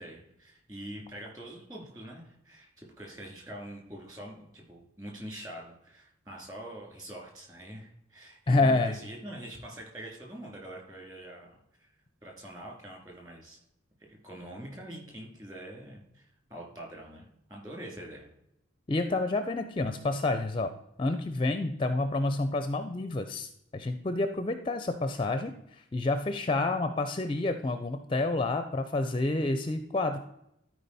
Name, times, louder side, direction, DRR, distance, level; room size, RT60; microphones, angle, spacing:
voice 1, 0.0-11.5 11.8-11.9 12.2-13.6 14.1-18.3, right 1 dB, 20° right, 0 dB, 2.8 m, -44 dB
voice 2, 8.5-8.9 18.9-20.7 21.0-30.2, left 2 dB, 25° left, 9 dB, 0.5 m, -29 dB
12.5 x 4.8 x 4.1 m, 0.78 s
head